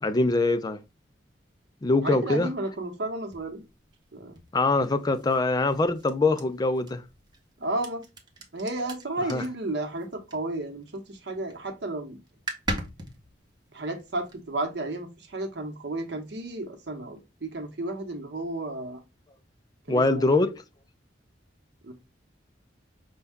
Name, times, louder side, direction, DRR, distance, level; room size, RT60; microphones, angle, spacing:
voice 1, 0.0-0.8 1.8-2.5 4.5-7.0 9.3-9.4 19.9-20.6, left 2 dB, 20° left, 0.3 m, -23 dB
voice 2, 2.0-3.6 4.1-4.4 7.6-8.0 8.5-12.2 13.7-19.0 19.9-20.4 21.8-21.9, right 2 dB, 65° right, 0.9 m, -33 dB
sound 1, 3.3-11.0 11.3-11.7 12.0-12.1 12.3-14.7, right 2 dB, 25° right, 0.7 m, -40 dB
5.3 x 2.3 x 3.5 m
head